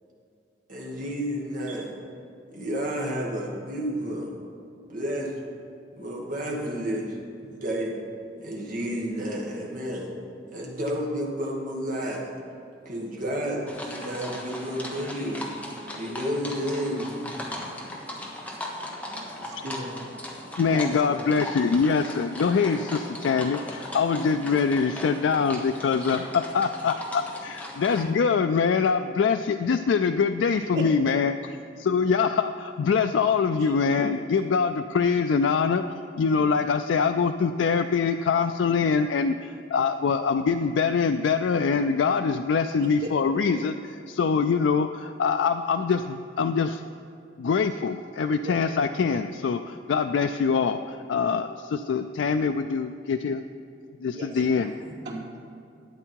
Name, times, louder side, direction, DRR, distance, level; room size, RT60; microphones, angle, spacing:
voice 1, 0.7-1.9 2.5-4.3 4.9-5.3 5.9-7.2 7.4-7.9 8.4-10.1 10.5-12.3 12.8-15.4 16.0-17.1, equal, 50° right, 2.1 m, -31 dB
sound 1, 13.7-28.1, left 1 dB, 10° left, 1.3 m, -38 dB
voice 2, 19.4-20.0 20.7-21.2 30.7-30.8 34.0-34.1 43.0-43.1 48.4-48.6 54.1-54.3 54.6-55.4, right 1 dB, 75° right, 3.2 m, -35 dB
voice 3, 20.5-46.9 47.4-53.4 54.0-54.7, left 5 dB, 85° left, 0.4 m, -24 dB
12.0 x 9.0 x 4.6 m
head